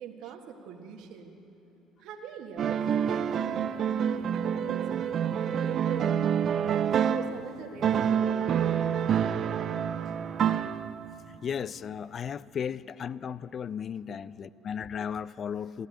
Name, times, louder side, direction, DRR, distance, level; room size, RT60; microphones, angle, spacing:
voice 1, 0.0-1.4 2.0-3.2 3.4-6.2 6.7-9.5 14.4-14.5, right 6 dB, 70° right, 3 dB, 1.4 m, -43 dB
sound 1, 2.6-7.4 7.8-11.2, right 8 dB, 55° right, 0.5 m, -27 dB
voice 2, 11.3-15.9, left 7 dB, 45° left, 19 dB, 0.4 m, -35 dB
14.5 x 10.5 x 9.0 m, 3.0 s
supercardioid pair, 75°, 0 cm